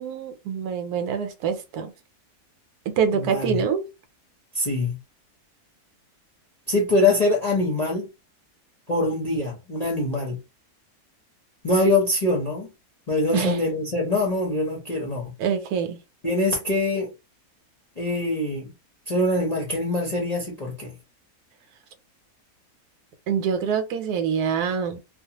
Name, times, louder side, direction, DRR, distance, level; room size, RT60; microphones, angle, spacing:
voice 1, 0.0-1.9 2.9-3.9 13.3-13.6 15.4-16.0 23.3-25.0, right 7 dB, 80° right, 1.1 m, -25 dB
voice 2, 3.1-3.6 4.5-5.0 6.7-8.1 8.9-10.4 11.6-12.7 13.1-15.3 16.2-17.1 18.0-18.7 19.1-20.9, left 2 dB, 40° left, 0.6 m, -24 dB
2.3 x 2.3 x 2.8 m
omnidirectional pair, 1.6 m